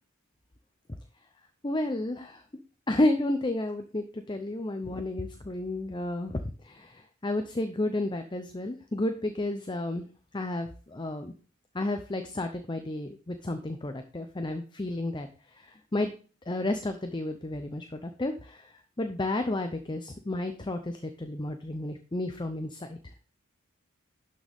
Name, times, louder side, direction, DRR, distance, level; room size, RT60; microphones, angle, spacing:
voice 1, 1.6-2.4 2.9-6.3 6.6-10.0 10.3-11.3 11.7-16.1 16.5-18.7 19.0-23.0, left 1 dB, 20° left, 7 dB, 0.6 m, -31 dB
11.5 x 6.3 x 3.5 m, 0.38 s
head